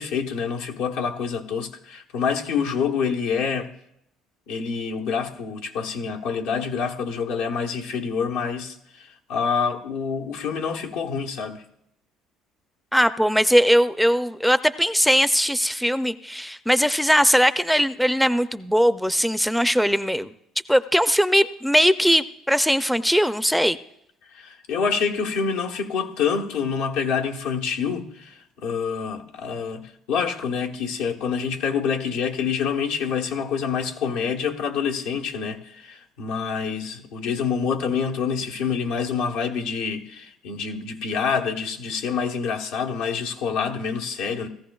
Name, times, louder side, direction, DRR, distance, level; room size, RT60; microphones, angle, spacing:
voice 1, 0.0-3.7 4.5-11.6 24.3-44.5, left 6 dB, 85° left, 1.0 m, -27 dB
voice 2, 12.9-20.3 20.7-23.8, equal, ahead, 0.4 m, -20 dB
17.5 x 14.0 x 2.3 m
supercardioid pair, 90°, 0 cm